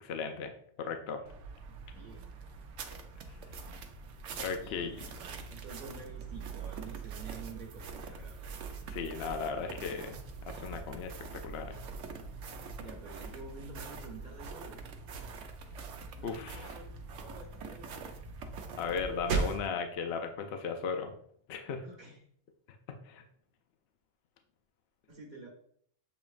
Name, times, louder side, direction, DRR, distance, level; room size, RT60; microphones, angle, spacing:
voice 1, 0.0-1.2 4.4-5.1 8.9-10.2 10.5-11.8 16.2-16.7 18.8-21.1 21.5-21.8 22.9-23.2, left 5 dB, 65° left, 5 dB, 0.8 m, -36 dB
sound 1, 1.2-19.7, right 4 dB, 80° right, 0.9 m, -42 dB
voice 2, 1.9-2.3 4.5-5.2 5.5-8.5 12.8-14.8 16.1-18.5 21.8-22.2 25.1-25.5, right 3 dB, 40° right, -3 dB, 1.0 m, -49 dB
7.0 x 3.0 x 2.4 m, 0.62 s
omnidirectional pair, 1.3 m